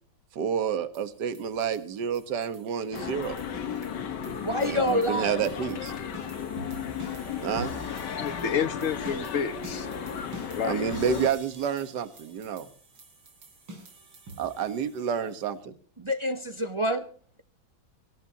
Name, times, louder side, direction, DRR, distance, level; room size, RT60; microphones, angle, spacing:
voice 1, 0.3-3.4 4.6-5.9 7.4-7.8 10.6-12.7 14.4-15.7, right 7 dB, 60° right, 12 dB, 1.8 m, -29 dB
sound 1, 0.9-15.5, right 2 dB, 85° right, 4.4 m, -47 dB
sound 2, 2.9-11.3, left 7 dB, 60° left, 1.9 m, -35 dB
voice 2, 4.4-5.3 16.0-17.0, left 1 dB, 30° right, 8 dB, 0.6 m, -27 dB
voice 3, 8.2-9.9 10.5-11.2, left 7 dB, 45° left, 11 dB, 1.5 m, -30 dB
24.5 x 15.0 x 2.8 m, 0.43 s
omnidirectional pair, 2.2 m